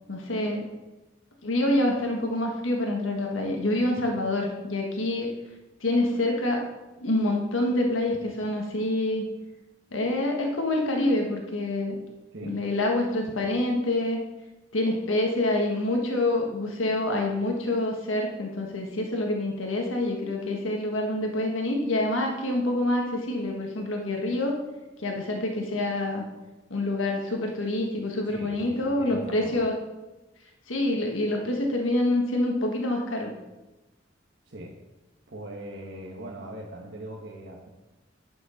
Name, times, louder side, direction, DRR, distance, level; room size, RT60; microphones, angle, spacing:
voice 1, 0.1-0.7 1.4-5.3 5.8-6.6 7.0-9.2 9.9-12.0 12.4-14.2 14.7-24.6 25.0-26.2 26.7-29.7 30.7-33.3, left 1 dB, 85° left, 1 dB, 1.6 m, -26 dB
voice 2, 28.2-29.6 34.4-34.7 35.3-37.7, right 1 dB, 65° right, -2 dB, 1.3 m, -40 dB
10.0 x 6.3 x 6.4 m, 1.1 s
head